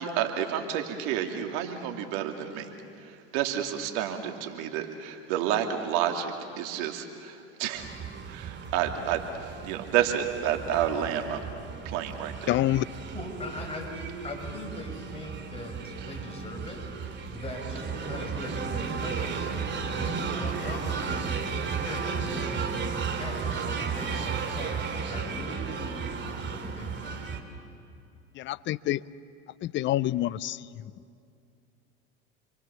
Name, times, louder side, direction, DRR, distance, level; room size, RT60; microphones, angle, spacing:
voice 1, 0.0-2.7 3.0-7.9 8.3-11.4 11.8-12.6, right 9 dB, 65° right, 4 dB, 2.9 m, -30 dB
sound 1, 7.8-27.4, right 5 dB, 35° right, 2.8 m, -34 dB
voice 2, 12.5-12.8 28.4-29.0 29.6-30.6, left 14 dB, 35° left, 19 dB, 0.6 m, -27 dB
voice 3, 13.1-27.2, left 1 dB, 15° left, -1 dB, 7.1 m, -40 dB
29.0 x 23.0 x 7.2 m, 2.5 s
hypercardioid pair, 100°, 34 cm